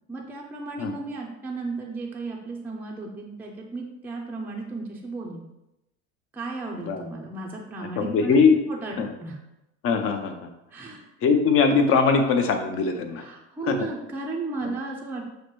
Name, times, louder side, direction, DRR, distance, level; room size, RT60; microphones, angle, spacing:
voice 1, 0.1-5.4 6.3-8.4 8.7-8.9 9.2-9.4 10.7-11.1 13.2-15.3, right 3 dB, 5° right, -2 dB, 0.5 m, -34 dB
voice 2, 8.0-8.6 9.0-9.1 9.8-10.5 11.2-13.3 13.7-13.9 14.6-14.7, left 5 dB, 40° left, 6 dB, 0.7 m, -21 dB
6.3 x 2.1 x 3.0 m, 0.90 s
supercardioid pair, 95°, 34 cm